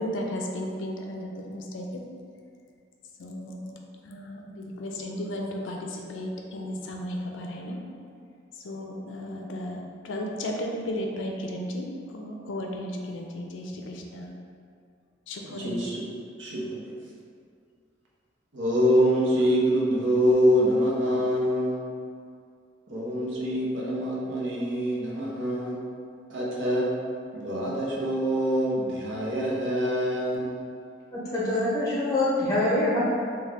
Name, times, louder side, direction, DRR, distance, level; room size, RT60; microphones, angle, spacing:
voice 1, 0.0-2.0 3.2-3.7 4.0-7.8 8.6-9.8 10.0-14.3 15.3-15.9, left 1 dB, 80° left, 1 dB, 0.4 m, -34 dB
voice 2, 15.6-16.0 16.4-16.9 18.5-21.8 22.9-25.8 26.3-26.9 27.3-30.6, equal, 70° right, -5 dB, 0.8 m, -25 dB
voice 3, 31.1-33.0, left 1 dB, 20° left, -8 dB, 0.9 m, -25 dB
3.7 x 2.3 x 3.3 m, 2.3 s
head